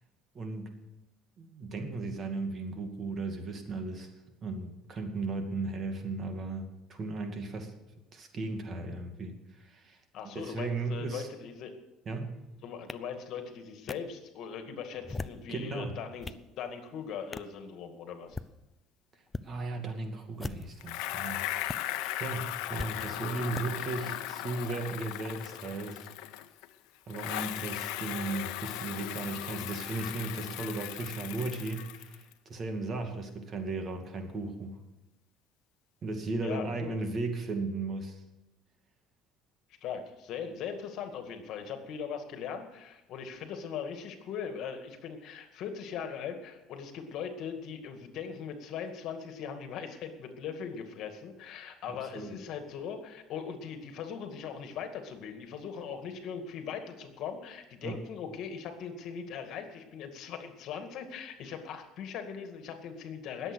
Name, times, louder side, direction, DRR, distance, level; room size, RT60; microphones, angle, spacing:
voice 1, 0.3-0.7 1.4-4.1 4.4-7.7 8.1-10.0 10.3-11.3 12.1-12.3 15.5-16.0 19.4-26.1 27.1-34.8 36.0-38.2 51.9-52.3 57.8-58.0, right 3 dB, 35° right, 5 dB, 2.3 m, -36 dB
voice 2, 10.1-11.7 12.6-18.4 36.4-36.9 39.8-63.5, left 7 dB, 60° left, 6 dB, 2.1 m, -40 dB
sound 1, 12.9-13.0 13.9-14.0 15.0-15.5 16.0-16.5 17.3-17.5 18.2-18.5 19.3-19.5 20.3-20.8 21.7-21.8 22.8-22.9 23.5-23.7, left 3 dB, 15° left, 0.5 m, -39 dB
Bicycle, 20.8-26.7 27.1-32.3, left 15 dB, 80° left, 0.8 m, -37 dB
20.0 x 8.0 x 6.3 m, 0.99 s
cardioid pair, 120°, 0 cm